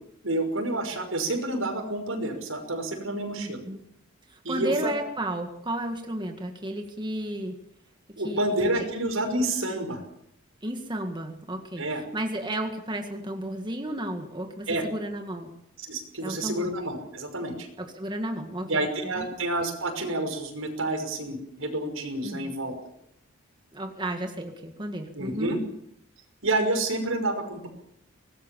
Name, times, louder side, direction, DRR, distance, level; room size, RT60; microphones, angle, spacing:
voice 1, 0.2-3.6 4.4-4.9 8.2-10.0 11.8-12.0 14.7-14.8 15.9-17.7 18.7-22.7 25.2-25.6 26.4-27.7, right 2 dB, 80° right, 5 dB, 5.6 m, -29 dB
voice 2, 3.4-3.8 4.3-7.6 8.2-8.9 10.6-15.5 16.2-16.7 17.8-19.3 22.2-22.5 23.7-25.6, right 1 dB, 20° right, 4 dB, 1.9 m, -33 dB
24.0 x 19.5 x 7.1 m, 0.73 s
head